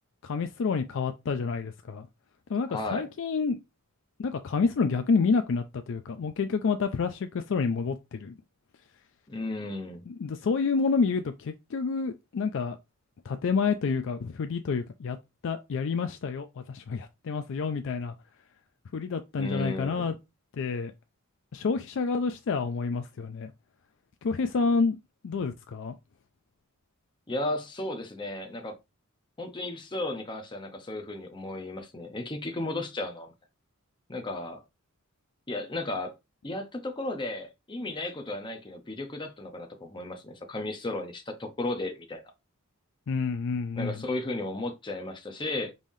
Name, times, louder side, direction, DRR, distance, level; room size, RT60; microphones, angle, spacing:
voice 1, 0.2-2.1 2.5-3.6 4.2-8.4 10.2-12.8 13.3-15.2 15.4-18.1 18.9-20.1 20.5-20.9 21.5-23.5 24.2-25.0 25.2-25.9 43.1-43.9, left 5 dB, 60° left, 0.4 m, -28 dB
voice 2, 2.7-3.1 9.3-10.0 19.3-20.2 27.3-28.7 29.4-33.3 34.1-34.6 35.5-36.1 36.4-42.2 43.8-45.7, left 2 dB, 20° left, 0.7 m, -34 dB
5.4 x 3.3 x 2.7 m
head